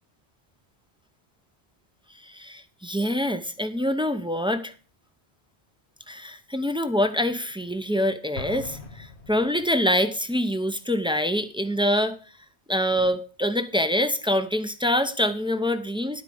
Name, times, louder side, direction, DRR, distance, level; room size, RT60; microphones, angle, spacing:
voice 1, 2.3-4.7 6.1-12.2 12.7-16.2, equal, 5° right, 9 dB, 0.6 m, -25 dB
Explosion, 8.4-9.9, left 5 dB, 85° left, 1.4 m, -40 dB
12.0 x 4.7 x 7.0 m, 0.38 s
omnidirectional pair, 1.1 m